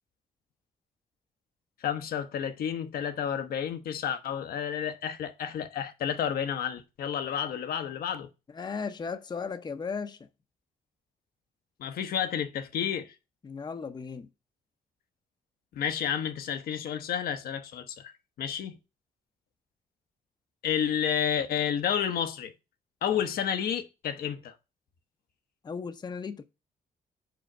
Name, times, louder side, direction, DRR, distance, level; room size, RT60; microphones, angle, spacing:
voice 1, 1.8-8.3 11.8-13.1 15.7-18.1 18.4-18.7 20.6-22.5 23.0-24.5, left 8 dB, 75° left, 1.0 m, -30 dB
voice 2, 8.5-10.3 13.4-14.3 25.6-26.4, left 5 dB, 30° left, 0.6 m, -36 dB
5.2 x 4.4 x 6.0 m
cardioid pair, 95°, 15 cm